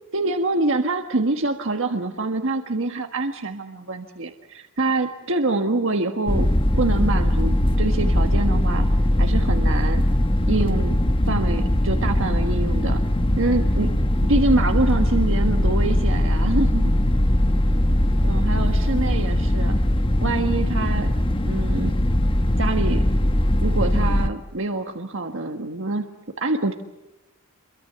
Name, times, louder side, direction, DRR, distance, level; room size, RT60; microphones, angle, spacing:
voice 1, 0.1-6.5 6.8-8.9 9.2-10.0 10.5-11.0 11.3-13.0 13.4-13.9 14.3-16.9 18.2-19.8 20.2-21.1 21.4-22.0 22.6-23.0 23.6-26.0 26.4-26.7, right 2 dB, 65° right, 5 dB, 1.5 m, -25 dB
sound 1, 6.3-24.3, left 1 dB, 25° left, 1.2 m, -20 dB
28.0 x 23.0 x 6.9 m, 0.97 s
head